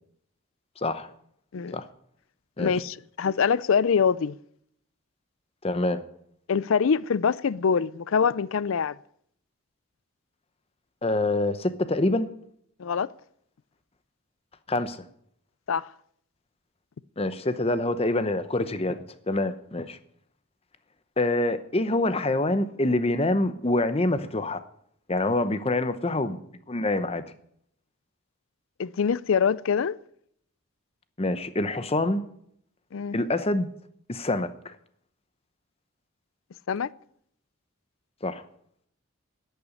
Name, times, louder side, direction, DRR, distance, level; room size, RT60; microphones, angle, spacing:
voice 1, 0.8-1.1 1.7-1.9 2.6-2.7 5.6-6.0 11.0-12.3 14.7-15.0 17.2-20.0 21.2-24.6 25.1-26.4 26.7-27.2 31.2-32.2 33.1-33.7 34.1-34.8 38.2-38.4, left 2 dB, 25° left, 0.8 m, -26 dB
voice 2, 2.6-4.4 6.5-9.0 12.8-13.1 15.7-15.9 28.8-30.0 32.9-33.2 36.7-36.9, left 6 dB, 65° left, 0.4 m, -24 dB
10.5 x 8.9 x 9.9 m
head